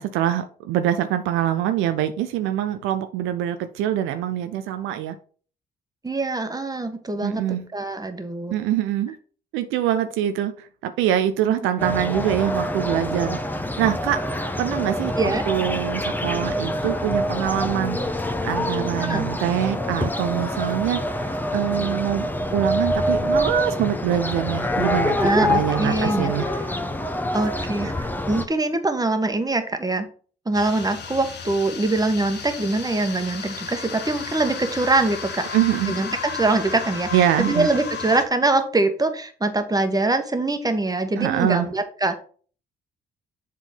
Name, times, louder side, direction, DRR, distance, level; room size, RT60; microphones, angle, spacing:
voice 1, 0.0-5.2 7.2-7.7 8.5-9.2 9.5-13.4 13.8-14.2 14.6-18.1 18.4-26.5 35.5-36.0 37.1-37.7 41.2-41.7, right 11 dB, 70° right, 9 dB, 0.6 m, -24 dB
voice 2, 6.0-7.4 7.7-8.5 15.2-15.4 19.0-19.3 25.2-26.3 27.3-27.9 28.3-30.1 30.4-35.4 35.9-42.2, right 2 dB, 15° right, 7 dB, 1.4 m, -23 dB
sound 1, 11.8-28.5, left 1 dB, 10° left, 1.0 m, -26 dB
sound 2, 30.5-38.2, left 6 dB, 55° left, 1.3 m, -34 dB
7.4 x 3.8 x 5.3 m, 0.42 s
hypercardioid pair, 45°, 21 cm